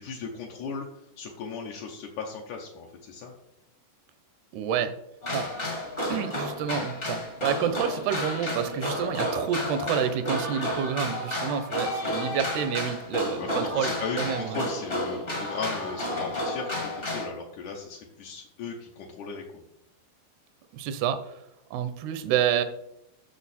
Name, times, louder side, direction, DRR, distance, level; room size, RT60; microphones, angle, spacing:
voice 1, 0.0-3.3 13.4-19.6, left 5 dB, 80° left, 0 dB, 1.7 m, -37 dB
voice 2, 4.5-4.9 5.3-5.5 6.1-13.9 14.2-14.6 20.7-21.3 21.7-22.6, right 8 dB, 80° right, 11 dB, 2.7 m, -28 dB
sound 1, 5.2-17.3, left 1 dB, 45° left, 0.7 m, -31 dB
9.3 x 6.5 x 4.2 m, 0.82 s
omnidirectional pair, 4.7 m